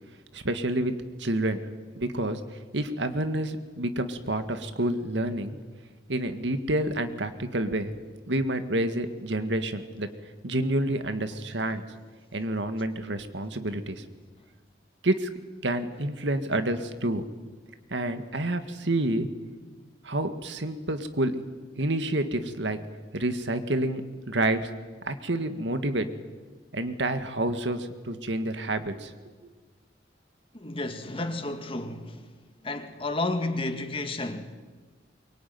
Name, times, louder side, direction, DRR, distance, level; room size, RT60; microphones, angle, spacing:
voice 1, 0.3-1.6 2.0-2.4 2.7-5.6 6.1-8.0 8.3-10.1 10.4-11.8 12.3-14.0 15.0-15.3 15.6-17.2 17.9-19.3 20.0-21.3 21.8-22.8 23.1-24.0 24.3-24.7 25.1-26.1 26.7-29.1, right 1 dB, 75° right, 1.9 m, -28 dB
voice 2, 30.5-32.3 32.6-34.5, left 2 dB, 30° left, 2.0 m, -31 dB
23.5 x 23.0 x 9.5 m
head